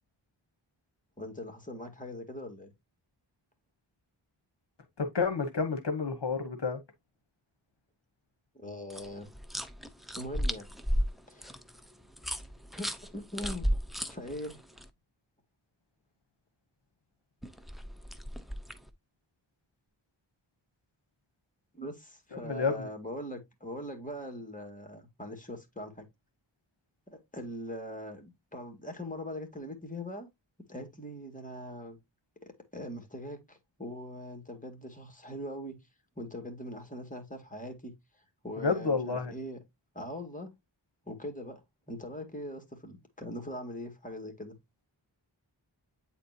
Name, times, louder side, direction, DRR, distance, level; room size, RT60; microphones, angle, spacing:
voice 1, 1.2-2.7 8.5-9.3 10.1-10.7 11.3-11.6 12.8-13.7 14.1-14.6 21.7-26.1 27.1-30.3 30.7-32.0 32.7-35.8 36.2-37.9 38.4-39.6 39.9-40.5 41.1-41.6 41.9-44.6, equal, 15° left, 1.9 m, -41 dB
voice 2, 5.0-6.8 22.5-22.9 38.6-39.3, left 4 dB, 60° left, 1.0 m, -30 dB
sound 1, 8.9-14.8 17.4-18.9, equal, ahead, 0.7 m, -34 dB
8.5 x 4.3 x 2.7 m
wide cardioid pair, 55°, 47 cm